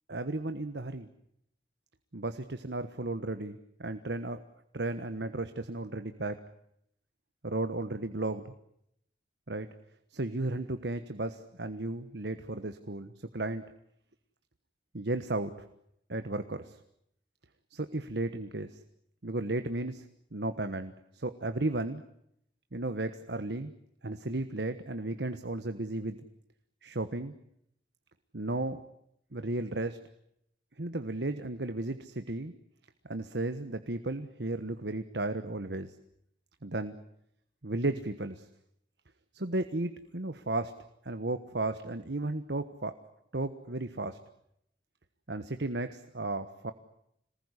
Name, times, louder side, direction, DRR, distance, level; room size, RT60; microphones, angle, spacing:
voice 1, 0.1-1.1 2.1-4.4 4.7-6.4 7.4-8.5 9.5-9.7 10.1-13.7 14.9-15.5 16.1-16.8 17.7-18.8 19.2-20.0 20.3-22.0 22.7-23.7 24.0-26.2 26.8-27.3 28.3-28.8 29.3-30.0 30.8-32.5 33.1-35.9 36.6-37.0 37.6-38.5 39.3-40.8 41.0-42.9 43.3-44.2 45.3-46.7, right 2 dB, 70° right, 10 dB, 1.4 m, -34 dB
27.0 x 20.0 x 9.9 m, 0.75 s
head